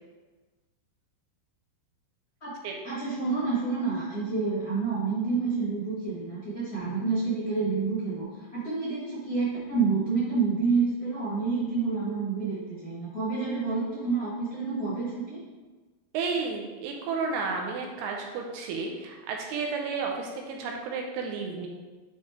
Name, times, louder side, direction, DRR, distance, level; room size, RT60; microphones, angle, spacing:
voice 1, 2.8-15.4, right 4 dB, 80° left, -10 dB, 0.8 m, -28 dB
voice 2, 16.1-21.7, right 4 dB, 80° right, 1 dB, 2.5 m, -32 dB
8.4 x 3.1 x 4.4 m, 1.3 s
omnidirectional pair, 5.0 m